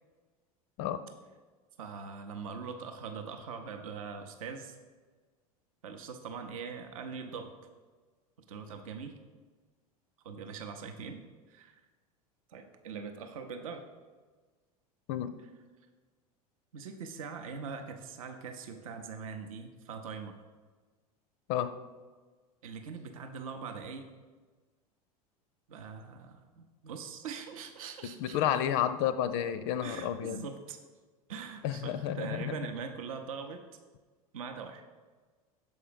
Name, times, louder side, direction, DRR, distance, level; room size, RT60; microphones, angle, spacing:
voice 1, 1.8-4.8 5.8-7.5 8.5-9.1 10.2-11.2 11.5-11.8 12.5-13.8 16.7-20.3 22.6-24.1 25.7-28.4 29.8-30.8 31.3-33.6 34.3-34.9, right 5 dB, 60° right, 6 dB, 0.7 m, -42 dB
voice 2, 28.2-30.4 31.6-32.7, left 10 dB, 45° left, 12 dB, 0.4 m, -31 dB
7.2 x 4.7 x 4.9 m, 1.4 s
figure-of-eight pair, 80°, 19 cm